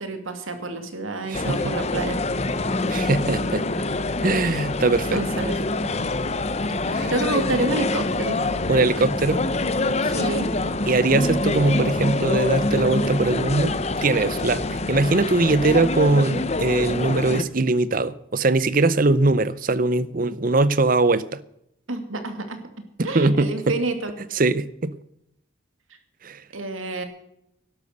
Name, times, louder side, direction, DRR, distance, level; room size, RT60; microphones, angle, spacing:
voice 1, 0.0-2.2 5.1-5.6 7.0-8.4 10.0-10.5 21.9-22.6 23.0-24.1 26.5-27.1, right 2 dB, 80° right, 7 dB, 2.5 m, -28 dB
sound 1, 1.3-17.4, left 2 dB, 30° left, 0.7 m, -25 dB
voice 2, 1.3-1.7 2.9-3.6 4.2-5.2 6.9-7.1 8.7-9.4 10.9-13.8 14.0-21.4 23.1-23.5 24.3-24.9 26.2-26.4, right 3 dB, 40° right, 16 dB, 0.7 m, -21 dB
12.0 x 12.0 x 6.7 m, 0.78 s
head